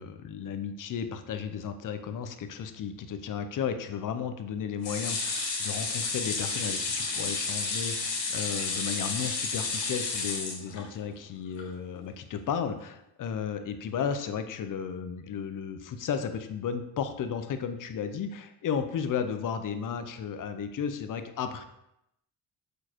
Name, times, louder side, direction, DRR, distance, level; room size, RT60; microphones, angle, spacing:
voice 1, 0.0-21.6, left 7 dB, 45° left, 8 dB, 0.7 m, -34 dB
sound 1, 4.8-11.1 11.6-11.7 12.0-12.1, left 4 dB, 85° left, 2.1 m, -31 dB
6.6 x 4.6 x 4.4 m, 0.83 s
cardioid pair, 145°, 44 cm